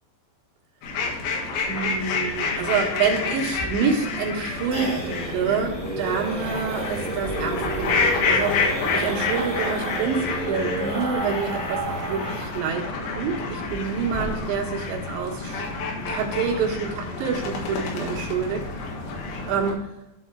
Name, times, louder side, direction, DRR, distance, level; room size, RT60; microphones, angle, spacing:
sound 1, 0.8-19.7, left 4 dB, 85° left, 3.9 m, -29 dB
voice 1, 1.7-8.7 8.9-12.9 13.2-15.6 16.1-18.7 19.5-19.9, right 6 dB, 75° right, 0 dB, 3.4 m, -27 dB
sound 2, 3.5-12.6 12.9-13.0 13.3-13.4 13.7-14.2, right 2 dB, 25° right, 0.8 m, -31 dB
12.5 x 4.3 x 4.5 m, 0.96 s
omnidirectional pair, 5.3 m